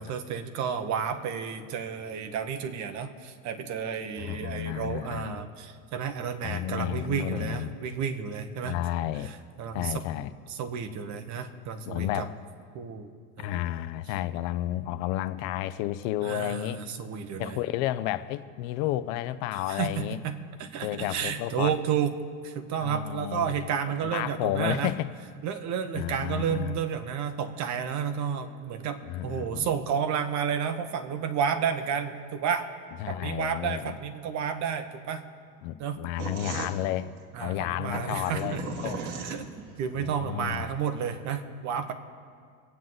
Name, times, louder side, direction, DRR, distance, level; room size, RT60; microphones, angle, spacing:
voice 1, 0.0-8.8 9.2-10.0 10.5-12.3 12.7-13.1 13.4-13.6 16.2-17.6 19.5-22.1 22.4-24.9 25.4-32.7 33.1-35.2 35.8-36.0 37.3-41.9, right 7 dB, 40° right, 7 dB, 1.3 m, -31 dB
voice 2, 4.2-5.4 6.4-7.7 8.6-9.3 9.7-10.3 11.9-12.4 13.4-16.8 17.4-20.2 20.8-21.7 22.8-25.1 25.9-26.8 29.0-29.7 33.0-34.0 35.6-37.1 37.4-39.0 40.0-40.7, left 14 dB, 60° left, 13 dB, 0.7 m, -32 dB
sound 1, 36.2-39.8, right 4 dB, 60° right, 2.3 m, -36 dB
26.5 x 9.3 x 4.0 m, 2.1 s
supercardioid pair, 140°, 43 cm